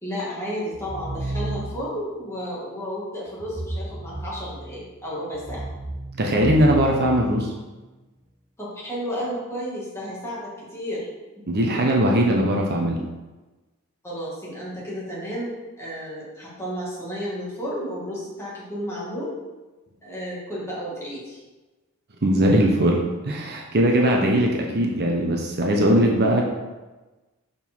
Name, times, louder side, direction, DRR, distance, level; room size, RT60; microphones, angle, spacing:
voice 1, 0.0-5.6 8.6-11.1 11.7-11.8 14.0-19.3 20.0-21.4, equal, 10° left, -7 dB, 2.4 m, -32 dB
sound 1, 0.7-2.0 3.4-4.8 5.3-7.8, right 2 dB, 15° right, 0.5 m, -33 dB
voice 2, 6.2-7.5 11.5-13.0 22.2-26.4, right 1 dB, 50° right, 0 dB, 0.9 m, -20 dB
6.8 x 5.5 x 4.6 m, 1.2 s
head